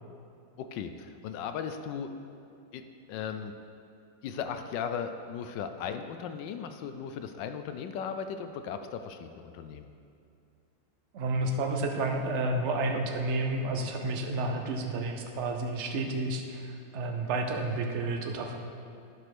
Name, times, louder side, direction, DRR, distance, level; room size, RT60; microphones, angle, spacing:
voice 1, 0.6-2.1 2.7-2.8 3.1-3.5 4.2-9.9, left 7 dB, 75° left, 8 dB, 1.1 m, -37 dB
voice 2, 11.1-18.6, right 2 dB, 55° right, 3 dB, 0.8 m, -31 dB
11.0 x 5.0 x 6.0 m, 2.5 s
omnidirectional pair, 2.2 m